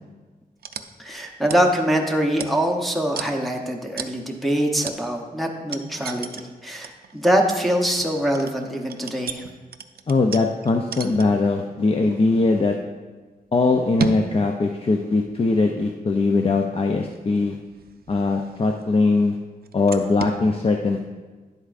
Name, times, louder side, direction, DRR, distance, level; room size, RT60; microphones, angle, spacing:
sound 1, 0.6-0.9 1.1-1.7 2.3-2.8 3.1-3.3 4.0-4.2 4.8-5.0 5.7-6.5 6.8-11.5 12.0-12.7 13.5-14.3 15.2-16.1 17.1-19.0 19.6-20.4, right 6 dB, 75° right, 0.4 m, -35 dB
voice 1, 1.0-9.4, equal, ahead, 0 dB, 0.7 m, -23 dB
voice 2, 10.1-12.8 13.5-17.6 18.1-19.4 19.7-21.0, left 3 dB, 35° left, 3 dB, 0.4 m, -21 dB
10.5 x 8.1 x 2.5 m, 1.3 s
wide cardioid pair, 140°, 16 cm